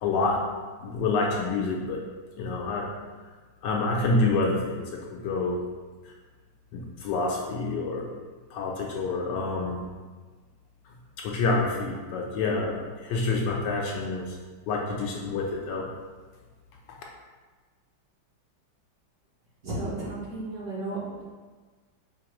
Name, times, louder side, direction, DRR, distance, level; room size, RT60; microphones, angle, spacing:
voice 1, 0.0-0.4 0.8-2.0 2.4-2.9 3.6-5.6 6.7-8.1 8.5-9.8 11.2-14.3 14.7-15.9, left 3 dB, 75° left, -1 dB, 1.1 m, -27 dB
voice 2, 19.6-21.2, right 2 dB, 60° right, -7 dB, 1.2 m, -33 dB
4.7 x 2.5 x 3.0 m, 1.4 s
omnidirectional pair, 2.1 m